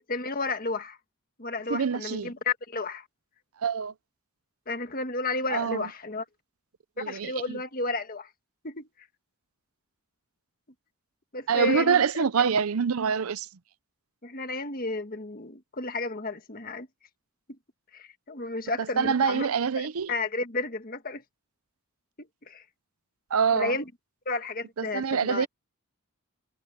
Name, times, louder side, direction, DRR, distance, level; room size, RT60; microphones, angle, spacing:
voice 1, 0.1-1.0 1.4-3.0 4.7-6.2 7.0-8.3 8.6-8.9 11.3-12.0 14.2-16.9 17.9-19.5 19.8-21.2 22.2-22.6 23.5-23.9 24.2-25.5, left 3 dB, 40° left, 1.6 m, -32 dB
voice 2, 1.7-2.3 3.6-3.9 5.5-5.8 7.0-7.6 11.5-13.5 19.0-20.1 23.3-23.8 24.8-25.5, right 6 dB, 80° right, 0.6 m, -25 dB
head